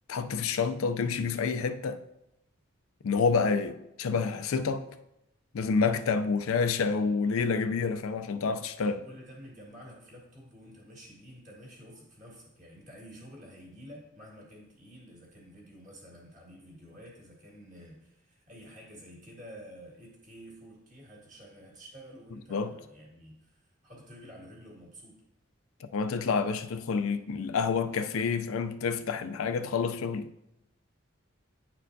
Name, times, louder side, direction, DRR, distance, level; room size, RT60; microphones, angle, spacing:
voice 1, 0.1-2.0 3.0-4.8 5.5-9.0 22.5-22.7 25.8-30.3, left 5 dB, 80° left, 0.4 m, -28 dB
voice 2, 8.9-25.2, equal, 35° right, 1.8 m, -50 dB
9.8 x 4.3 x 2.6 m
head